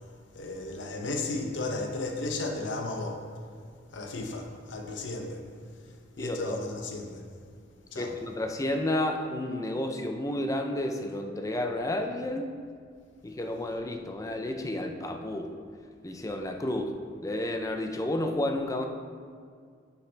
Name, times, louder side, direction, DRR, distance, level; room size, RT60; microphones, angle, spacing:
voice 1, 0.3-3.3 3.9-5.5 6.2-7.3 7.9-8.2, left 2 dB, 70° left, 0.8 m, -34 dB
voice 2, 6.2-6.6 8.0-12.5 13.2-15.5 16.0-16.9 17.2-18.8, left 1 dB, 15° left, 0.5 m, -31 dB
10.0 x 5.7 x 3.4 m
head